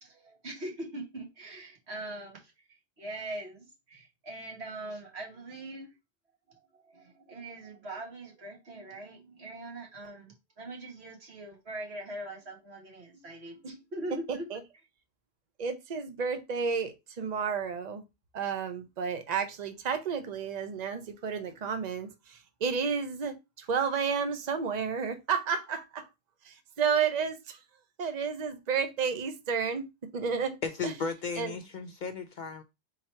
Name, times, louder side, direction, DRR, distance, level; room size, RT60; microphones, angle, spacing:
voice 1, 0.0-2.5 3.0-5.9 6.5-14.6, right 1 dB, 70° right, 1.7 m, -42 dB
voice 2, 14.3-14.6 15.6-18.0 18.3-26.1 26.4-27.6 28.0-29.9 30.1-30.6 30.8-30.9 31.4-31.5, right 6 dB, 45° right, 0.7 m, -31 dB
voice 3, 30.6-32.6, left 5 dB, 60° left, 0.5 m, -35 dB
3.9 x 2.9 x 4.4 m
omnidirectional pair, 1.1 m